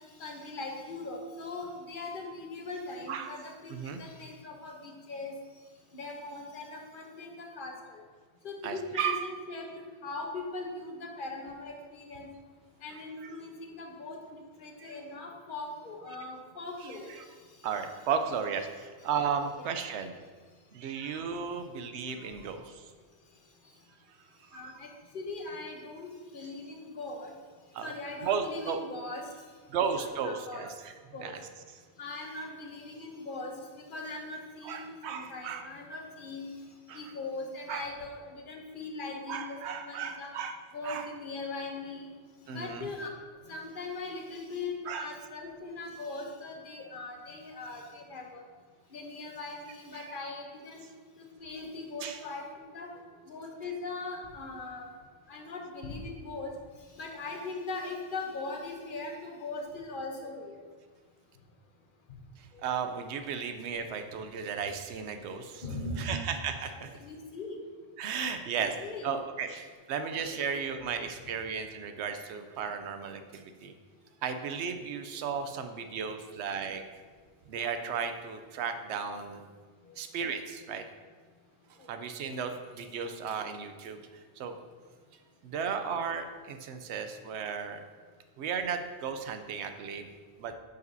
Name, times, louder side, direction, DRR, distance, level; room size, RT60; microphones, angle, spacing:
voice 1, 0.2-5.3 5.9-8.0 8.4-9.7 10.0-12.3 12.8-17.1 24.5-24.9 25.1-27.3 27.8-29.2 29.7-30.7 31.1-31.3 32.0-33.5 33.9-36.5 36.9-40.3 40.7-42.1 42.5-43.1 43.5-48.4 48.9-50.8 51.2-52.9 53.3-54.9 55.3-56.5 57.0-60.6 65.6-66.2 66.7-67.5 68.8-69.1 70.0-70.9 81.8-81.9, left 3 dB, 50° left, 1 dB, 1.1 m, -40 dB
voice 2, 3.7-4.0 8.6-9.3 13.2-13.3 14.8-14.9 17.2-17.3 17.6-20.2 20.7-22.9 24.5-24.6 27.7-27.9 28.2-28.8 29.7-30.9 31.2-31.4 34.6-35.7 36.9-37.0 37.7-37.9 39.3-40.6 40.8-41.1 42.5-42.9 44.9-45.1 50.0-50.1 52.0-52.2 62.4-65.6 66.0-66.9 68.0-68.7 69.0-73.7 74.2-76.8 77.5-79.5 80.0-80.8 81.9-84.6 85.4-87.8 88.4-90.1 90.4-90.5, right 6 dB, 85° right, 7 dB, 0.9 m, -35 dB
9.2 x 5.3 x 2.7 m, 1.5 s
omnidirectional pair, 1.1 m